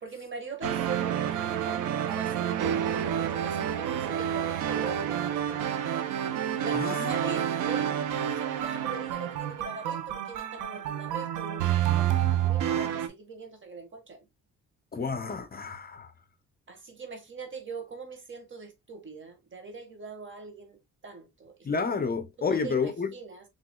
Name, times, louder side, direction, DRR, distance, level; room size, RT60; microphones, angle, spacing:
voice 1, 0.0-5.6 6.6-7.9 8.2-14.2 16.7-20.8 21.0-21.9 22.4-23.4, right 4 dB, 40° right, 1.5 m, -42 dB
sound 1, 0.6-13.1, right 10 dB, 90° right, 0.7 m, -29 dB
voice 2, 6.7-7.1 14.9-16.1 21.6-23.1, left 5 dB, 30° left, 0.6 m, -30 dB
5.8 x 3.1 x 2.2 m
cardioid pair, 90°, 30 cm